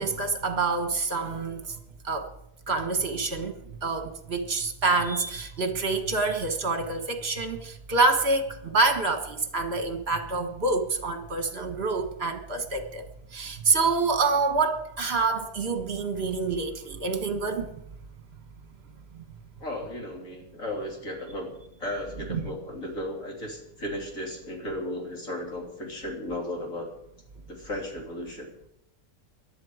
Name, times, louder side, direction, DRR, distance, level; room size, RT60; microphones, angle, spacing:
voice 1, 0.0-1.7 2.0-2.3 2.7-3.5 3.8-13.0 13.3-17.7 22.3-22.5, right 3 dB, 45° right, 7 dB, 1.7 m, -27 dB
voice 2, 19.6-26.9 27.5-28.5, left 1 dB, 60° left, 0 dB, 3.6 m, -35 dB
19.0 x 12.0 x 5.0 m, 0.82 s
omnidirectional pair, 1.6 m